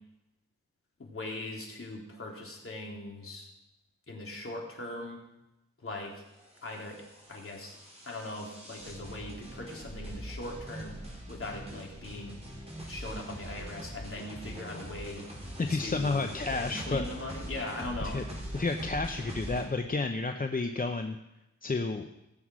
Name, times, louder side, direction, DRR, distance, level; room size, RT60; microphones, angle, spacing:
voice 1, 1.0-3.5 4.1-5.2 5.8-6.2 6.6-7.0 7.3-7.7 8.0-11.0 11.3-12.4 12.9-15.3 15.7-18.2, left 2 dB, 45° left, -1 dB, 3.6 m, -40 dB
sound 1, 6.4-19.6, right 1 dB, 20° right, 5.7 m, -42 dB
voice 2, 15.6-17.0 18.0-18.2 18.5-21.2 21.6-22.1, left 3 dB, 30° left, 6 dB, 0.8 m, -31 dB
18.0 x 7.9 x 6.3 m, 0.92 s
wide cardioid pair, 90°, 30 cm